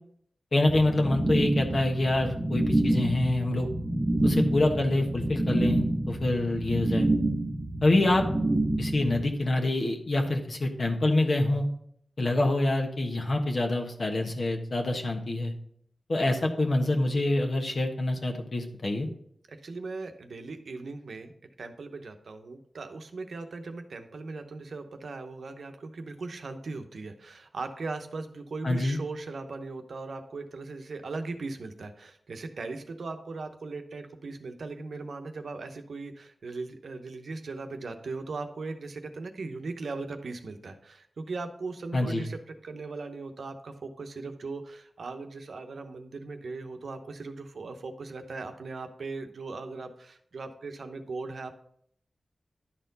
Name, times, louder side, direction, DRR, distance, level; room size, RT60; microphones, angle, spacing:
voice 1, 0.5-3.7 4.2-7.1 7.8-8.3 8.8-11.7 12.2-15.5 16.1-19.1 28.6-29.0 41.9-42.2, left 2 dB, 60° left, 2 dB, 1.3 m, -26 dB
sound 1, 0.7-9.2, right 1 dB, 20° right, 0.8 m, -28 dB
voice 2, 19.5-21.3 21.6-51.5, right 3 dB, 80° right, 7 dB, 0.8 m, -38 dB
11.0 x 4.3 x 4.0 m, 0.67 s
wide cardioid pair, 90°, 0 cm